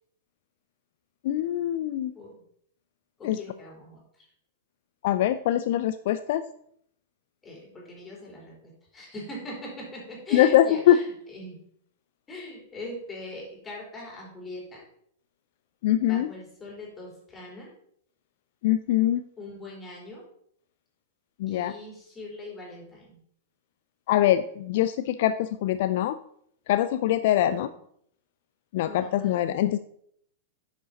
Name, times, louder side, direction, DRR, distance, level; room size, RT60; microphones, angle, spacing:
voice 1, 1.2-2.1 3.2-3.4 5.0-6.4 10.3-11.0 15.8-16.3 18.6-19.2 21.4-21.7 24.1-26.2 26.7-27.7 28.7-29.8, left 12 dB, 55° left, 11 dB, 0.4 m, -23 dB
voice 2, 3.2-4.3 7.4-11.6 12.3-14.8 16.0-17.7 19.4-20.2 21.5-23.2 27.4-27.8 28.8-29.5, left 1 dB, 15° left, -3 dB, 4.2 m, -41 dB
10.5 x 6.6 x 4.1 m, 0.68 s
figure-of-eight pair, 100°, 0 cm